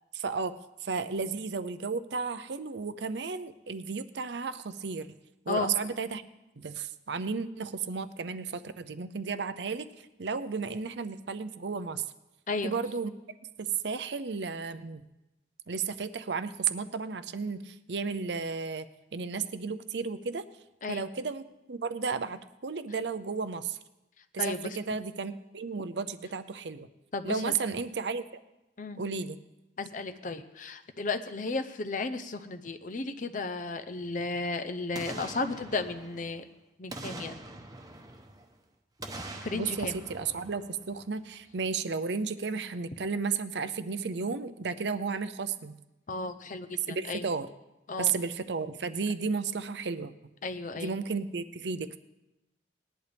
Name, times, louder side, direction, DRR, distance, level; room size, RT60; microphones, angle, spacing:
voice 1, 0.1-0.5 0.8-5.1 5.5-6.2 6.6-12.0 12.6-13.1 13.6-15.0 15.7-20.4 20.9-23.8 24.3-26.9 27.2-28.4 29.0-29.4 39.5-45.8 46.9-47.5 48.0-50.1 50.8-52.0, right 5 dB, 75° right, 11 dB, 0.6 m, -33 dB
voice 2, 24.4-24.8 27.1-27.5 28.8-29.0 29.8-36.4 36.8-37.4 39.4-40.0 46.1-47.3 47.9-48.1 50.4-50.9, left 3 dB, 45° left, 9 dB, 0.7 m, -34 dB
Boom, 34.9-36.5 36.9-38.5 39.0-41.2 41.6-41.7, right 2 dB, 20° right, 1.0 m, -44 dB
19.5 x 11.0 x 3.5 m, 0.97 s
head